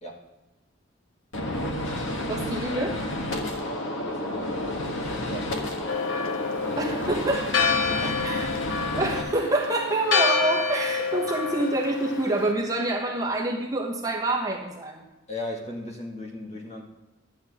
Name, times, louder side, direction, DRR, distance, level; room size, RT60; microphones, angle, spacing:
Gunshot gunfire, 1.3-9.2, left 1 dB, 90° left, 1.5 m, -31 dB
voice 1, 2.3-3.0 6.8-7.6 8.2-8.5 8.9-15.0, right 2 dB, 20° right, 0 dB, 1.0 m, -27 dB
voice 2, 4.1-4.6 4.9-5.6 8.0-8.3 15.3-16.8, left 1 dB, 35° left, -1 dB, 1.8 m, -37 dB
Church bell, 5.9-12.5, left 5 dB, 75° left, 1.0 m, -28 dB
12.0 x 8.4 x 3.5 m, 1.1 s
head